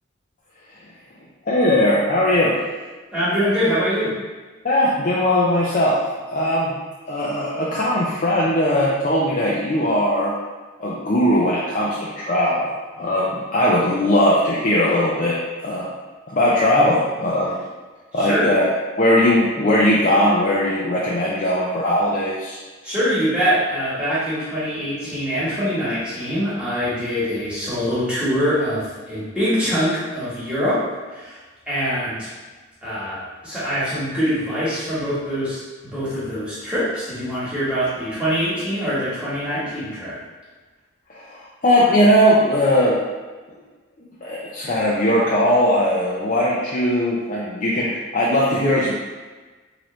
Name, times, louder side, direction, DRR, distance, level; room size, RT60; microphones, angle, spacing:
voice 1, 1.5-2.6 4.6-6.0 6.3-6.7 7.1-10.3 10.8-12.7 13.0-15.4 15.6-15.9 16.3-17.6 18.1-18.7 19.0-22.6 41.1-43.0 44.2-48.9, left 1 dB, 40° left, -6 dB, 0.5 m, -19 dB
voice 2, 3.1-4.1 18.1-18.5 22.8-31.4 31.7-32.3 32.8-40.2, equal, 5° right, -11 dB, 1.4 m, -24 dB
3.8 x 3.2 x 3.0 m, 1.3 s
head